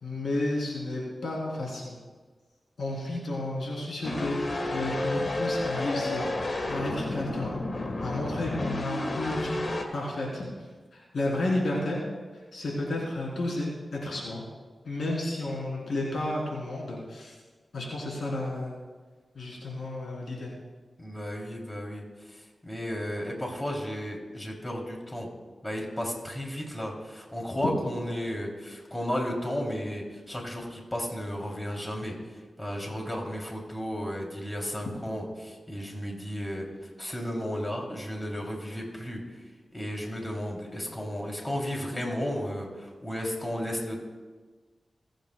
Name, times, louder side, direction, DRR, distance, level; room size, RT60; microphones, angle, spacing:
voice 1, 0.0-2.0 2.8-4.4 4.7-6.3 6.7-7.5 8.0-9.7 9.9-10.5 10.9-12.0 12.5-14.4 14.8-17.3 17.7-18.8 19.3-20.5, left 2 dB, 80° left, -3 dB, 3.3 m, -32 dB
sound 1, 4.0-9.8, left 2 dB, 55° left, 1.5 m, -31 dB
voice 2, 21.0-25.3 25.6-32.1 32.6-36.7 37.0-39.2 39.7-44.0, equal, 20° left, 0 dB, 3.1 m, -34 dB
26.5 x 9.0 x 2.3 m, 1.4 s
cardioid pair, 45°, 0 cm